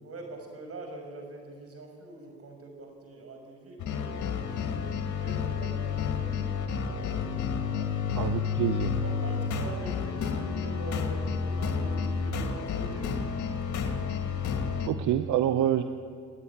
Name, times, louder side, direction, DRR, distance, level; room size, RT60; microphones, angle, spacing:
voice 1, 0.0-7.9 9.0-13.2 13.7-14.0, right 2 dB, 50° right, 3 dB, 6.1 m, -44 dB
sound 1, 3.8-14.9, left 6 dB, 75° left, 2.5 m, -30 dB
voice 2, 8.2-8.9 14.8-15.8, right 11 dB, 80° right, 9 dB, 0.9 m, -26 dB
28.5 x 9.9 x 10.0 m, 2.1 s
cardioid pair, 90°, 30 cm